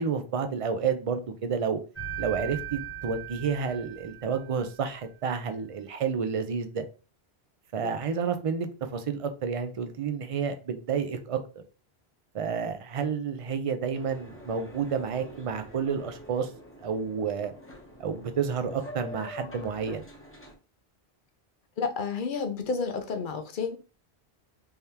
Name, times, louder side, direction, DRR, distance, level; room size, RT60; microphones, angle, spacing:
voice 1, 0.0-1.8 2.2-6.8 7.7-11.4 12.3-16.5 16.8-17.5 18.0-20.0, right 6 dB, 40° right, 0.5 m, -30 dB
sound 1, 2.0-4.8, right 9 dB, 40° left, 1.4 m, -39 dB
Boat Water vehicle, 13.9-20.5, equal, 15° left, 0.8 m, -46 dB
voice 2, 21.8-23.8, left 5 dB, 55° left, 0.8 m, -31 dB
3.5 x 3.4 x 2.8 m
omnidirectional pair, 1.1 m